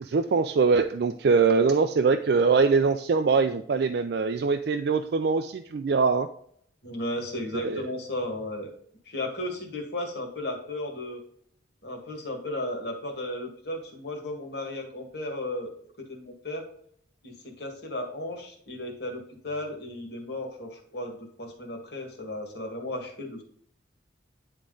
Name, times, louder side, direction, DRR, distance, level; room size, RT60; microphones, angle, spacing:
voice 1, 0.0-6.3 7.6-7.9, right 4 dB, 55° right, 7 dB, 0.4 m, -23 dB
voice 2, 6.8-8.7 9.1-11.2 11.8-15.7 16.0-16.7 17.2-23.4, left 1 dB, 55° left, 3 dB, 1.8 m, -35 dB
9.9 x 3.6 x 3.8 m, 0.65 s
head